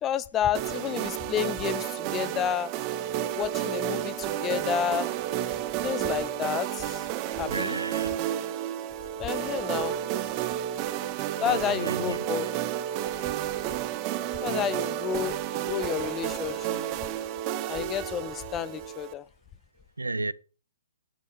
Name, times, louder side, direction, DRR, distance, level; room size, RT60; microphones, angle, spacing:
voice 1, 0.0-2.7 3.3-5.1 5.8-7.1 7.4-7.8 9.2-10.0 11.4-12.6 14.4-16.8 17.7-19.2, left 9 dB, 20° left, 0.7 m, -30 dB
sound 1, 0.5-19.1, right 11 dB, 30° right, 0.9 m, -31 dB
sound 2, 3.3-18.9, left 4 dB, 65° left, 3.9 m, -57 dB
voice 2, 7.5-8.1 11.4-12.5 20.0-20.3, right 3 dB, 80° right, 0.6 m, -33 dB
11.0 x 5.5 x 6.5 m
figure-of-eight pair, 125°, 0 cm